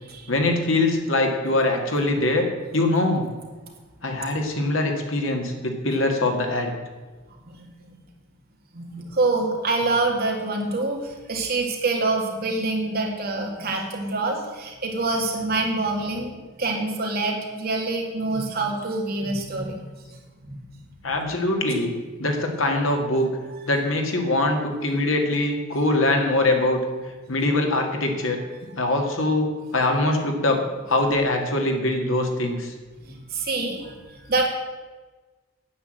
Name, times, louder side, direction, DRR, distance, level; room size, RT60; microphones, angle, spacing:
voice 1, 0.3-2.5 2.7-3.2 4.0-6.7 21.0-21.9 22.2-23.3 23.7-26.8 27.3-28.4 28.8-30.6 30.9-32.7, left 2 dB, 65° left, 3 dB, 1.9 m, -23 dB
voice 2, 7.6-7.9 8.7-19.8 20.4-20.6 33.0-34.0 34.3-34.5, right 3 dB, 45° right, 1 dB, 2.2 m, -26 dB
9.5 x 8.2 x 7.8 m, 1.3 s
head